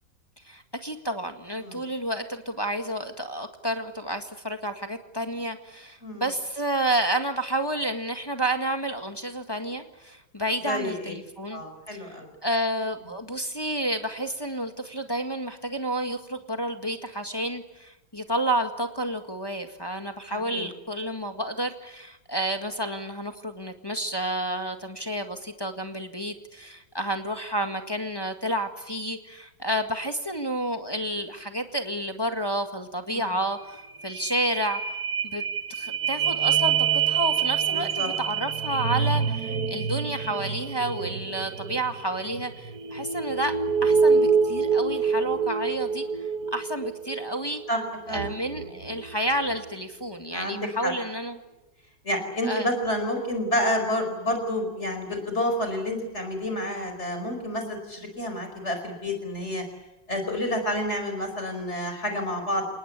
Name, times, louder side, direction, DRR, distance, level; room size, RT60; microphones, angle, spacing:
voice 1, 0.4-11.6 11.9-34.8 35.2-35.4 35.7-43.5 43.8-47.6 48.1-51.4 52.4-52.7, right 1 dB, 15° left, 5 dB, 1.8 m, -30 dB
voice 2, 10.6-11.1 11.5-12.3 20.3-20.7 33.1-33.3 37.7-38.1 47.7-48.3 50.3-50.9 52.0-59.6 60.1-62.6, left 1 dB, 35° left, 5 dB, 5.1 m, -29 dB
sound 1, 33.4-33.5 33.7-49.7 50.2-50.3, right 6 dB, 60° right, 1.7 m, -27 dB
29.0 x 19.5 x 8.2 m, 1.0 s
omnidirectional pair, 2.0 m